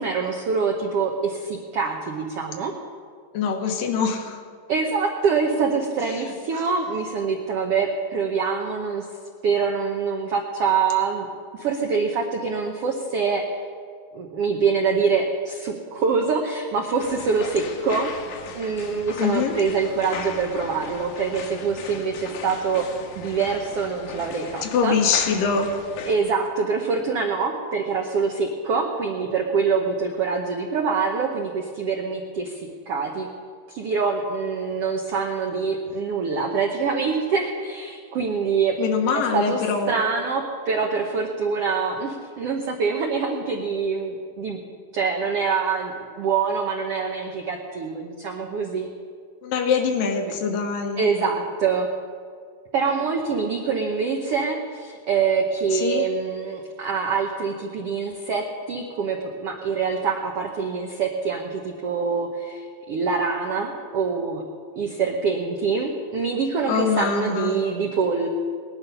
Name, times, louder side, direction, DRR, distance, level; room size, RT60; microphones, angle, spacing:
voice 1, 0.0-2.7 4.7-9.1 9.4-11.3 11.5-13.4 14.1-18.1 18.5-22.9 23.2-25.0 25.3-25.4 26.0-33.3 33.7-38.8 39.1-44.6 44.9-48.9 50.3-50.4 51.0-51.9 52.7-64.4 64.8-68.3, right 5 dB, 80° right, 2 dB, 1.3 m, -25 dB
voice 2, 3.3-4.4 19.2-19.5 24.6-25.7 38.8-39.9 49.4-51.1 55.7-56.0 66.7-67.5, left 6 dB, 85° left, 4 dB, 2.9 m, -23 dB
sound 1, 17.0-26.2, left 6 dB, 70° left, 1.8 m, -38 dB
19.0 x 11.0 x 5.5 m, 2.1 s
omnidirectional pair, 3.9 m